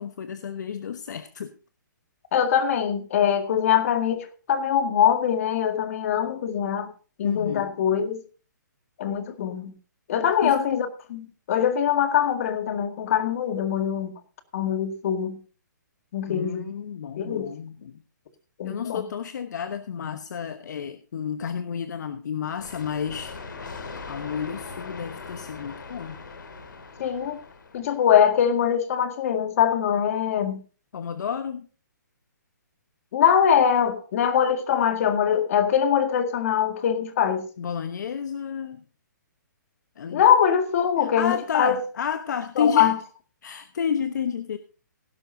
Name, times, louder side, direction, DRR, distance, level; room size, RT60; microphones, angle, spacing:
voice 1, 0.0-1.5 7.2-7.7 10.2-10.6 16.3-18.0 18.6-23.3 24.1-26.2 30.9-31.7 37.6-38.8 40.0-40.2 41.0-42.9 43.4-44.6, left 7 dB, 65° left, 1.0 m, -31 dB
voice 2, 2.3-6.9 7.2-8.2 9.0-9.7 10.1-14.1 14.5-15.4 16.1-16.7 17.2-17.5 18.6-19.0 27.0-27.4 27.7-30.6 33.1-37.5 40.1-41.8 42.6-43.0, left 8 dB, 45° left, 1.9 m, -23 dB
sound 1, 22.6-28.2, left 4 dB, 85° left, 2.4 m, -40 dB
17.0 x 11.5 x 2.7 m
hypercardioid pair, 150°, 10 cm